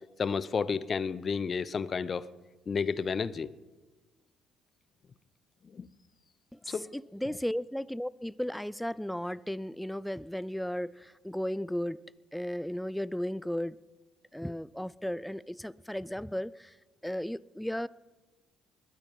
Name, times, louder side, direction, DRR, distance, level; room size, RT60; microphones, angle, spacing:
voice 1, 0.2-2.3 2.7-3.5 5.7-5.9 6.7-6.9, left 5 dB, 40° left, 18 dB, 0.7 m, -31 dB
voice 2, 6.5-12.0 12.3-13.8 14.3-16.8 17.0-17.9, equal, 5° left, 21 dB, 0.5 m, -35 dB
21.0 x 12.5 x 5.4 m, 1.2 s
hypercardioid pair, 60°, 0 cm